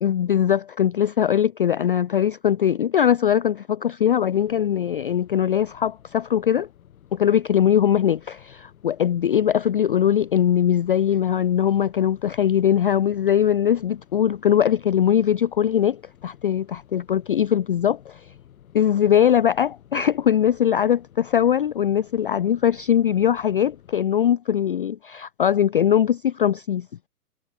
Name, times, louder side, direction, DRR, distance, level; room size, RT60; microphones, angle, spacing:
voice 1, 0.0-6.7 7.1-18.3 18.7-26.9, left 9 dB, 40° left, 0.4 m, -21 dB
sound 1, 4.1-24.0, left 10 dB, 60° left, 3.1 m, -52 dB
hypercardioid pair, 150°, 47 cm